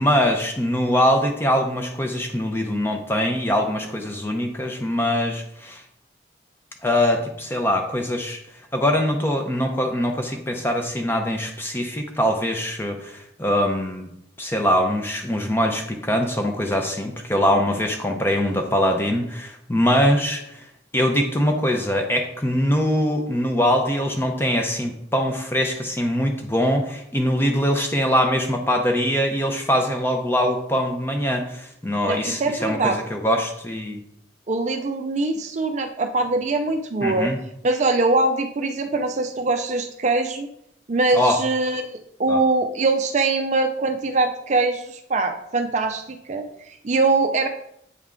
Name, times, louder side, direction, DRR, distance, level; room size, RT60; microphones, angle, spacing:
voice 1, 0.0-5.8 6.8-8.4 8.7-14.1 14.4-20.6 20.9-34.0 37.0-37.4 41.1-41.4 42.3-42.4, equal, 10° left, 3 dB, 0.6 m, -22 dB
voice 2, 32.1-33.0 34.5-37.3 37.6-40.5 40.9-47.5, right 3 dB, 35° right, 5 dB, 0.4 m, -23 dB
8.0 x 3.5 x 3.7 m, 0.75 s
head